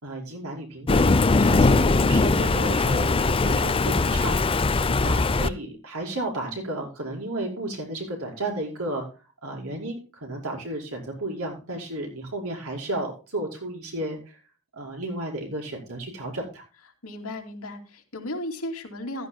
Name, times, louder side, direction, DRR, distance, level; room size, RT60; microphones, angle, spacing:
voice 1, 0.0-4.4 5.0-9.0 9.4-14.4 14.7-16.6, right 1 dB, 80° right, 0 dB, 5.2 m, -33 dB
Thunder, 0.9-5.5, left 3 dB, 25° left, 0.5 m, -21 dB
voice 2, 1.4-1.7 4.7-5.1 17.0-19.3, left 1 dB, 85° left, 3 dB, 2.6 m, -36 dB
15.0 x 12.5 x 2.2 m, 0.32 s
head